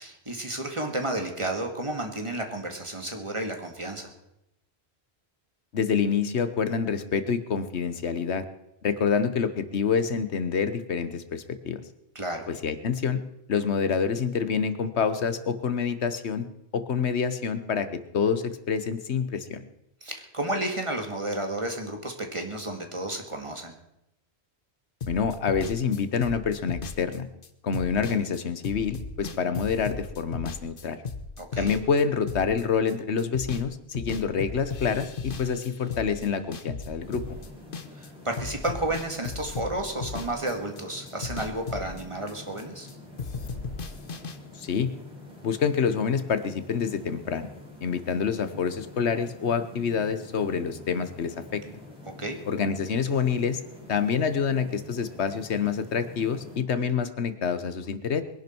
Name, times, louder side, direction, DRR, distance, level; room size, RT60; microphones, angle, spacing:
voice 1, 0.0-4.1 12.2-12.5 20.0-23.7 31.4-31.7 38.0-42.9 52.1-52.4, right 1 dB, 30° right, 4 dB, 2.1 m, -32 dB
voice 2, 5.7-8.4 8.8-11.8 12.5-13.2 13.5-16.5 16.7-19.6 25.1-27.3 27.6-31.0 31.6-37.4 44.6-44.9 45.4-47.5 47.8-51.6 52.5-53.6 53.9-58.2, left 6 dB, 80° left, 11 dB, 1.3 m, -27 dB
sound 1, 25.0-32.9 33.2-33.7 33.9-38.1 38.3-40.8 41.1-42.9 43.2-44.4, left 4 dB, 55° left, 1.2 m, -36 dB
sound 2, 37.0-56.6, left 2 dB, 5° right, 3.7 m, -47 dB
22.5 x 11.0 x 4.5 m, 0.84 s
omnidirectional pair, 1.1 m